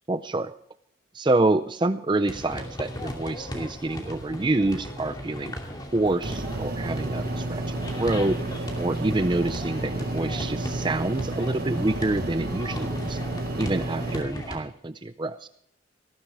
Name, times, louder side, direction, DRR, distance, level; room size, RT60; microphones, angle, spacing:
voice 1, 0.1-0.5 1.1-5.5 5.9-8.4 8.8-13.2 13.6-15.5, right 2 dB, 25° right, 12 dB, 0.5 m, -27 dB
sound 1, 2.3-14.6, equal, 20° left, 2.5 m, -37 dB
sound 2, 6.2-14.2, right 2 dB, 50° right, 1.2 m, -31 dB
19.0 x 14.5 x 3.4 m, 0.69 s
head